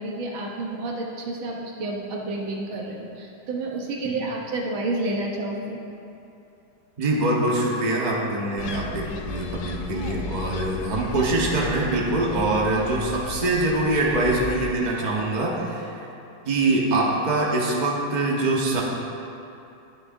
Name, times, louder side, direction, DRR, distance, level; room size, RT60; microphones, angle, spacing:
voice 1, 0.0-5.8, right 2 dB, 90° right, -1 dB, 1.9 m, -30 dB
voice 2, 7.0-16.1 16.4-18.8, right 2 dB, 25° right, -3 dB, 1.1 m, -24 dB
sound 1, 8.6-14.7, left 4 dB, 70° left, 1.0 m, -35 dB
20.0 x 6.6 x 2.7 m, 2.8 s
omnidirectional pair, 2.1 m